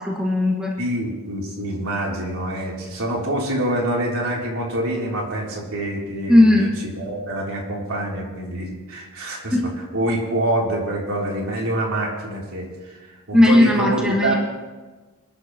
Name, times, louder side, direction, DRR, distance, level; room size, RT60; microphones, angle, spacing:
voice 1, 0.0-0.7 6.3-6.7 9.5-9.7 13.3-14.3, left 1 dB, 5° right, -2 dB, 1.7 m, -16 dB
voice 2, 0.8-6.7 6.9-9.5 9.9-13.0 13.3-14.4, right 1 dB, 75° right, -2 dB, 3.3 m, -26 dB
27.0 x 10.5 x 3.0 m, 1.3 s
head